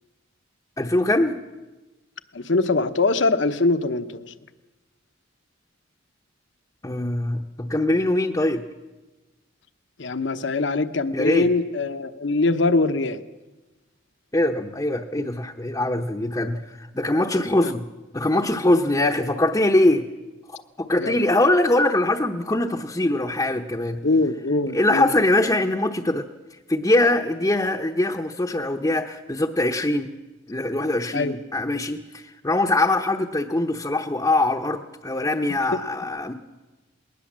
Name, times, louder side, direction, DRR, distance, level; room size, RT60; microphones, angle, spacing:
voice 1, 0.8-1.4 6.8-8.6 11.1-11.5 14.3-17.9 18.1-20.1 20.8-24.0 24.7-26.3 26.7-30.1 30.5-36.3, left 1 dB, 15° left, 1 dB, 0.8 m, -22 dB
voice 2, 2.3-4.3 10.0-13.2 17.6-17.7 19.0-19.1 21.0-21.2 24.0-25.1 31.1-31.4, left 3 dB, 65° left, 11 dB, 1.0 m, -22 dB
20.5 x 19.0 x 7.4 m, 1.1 s
head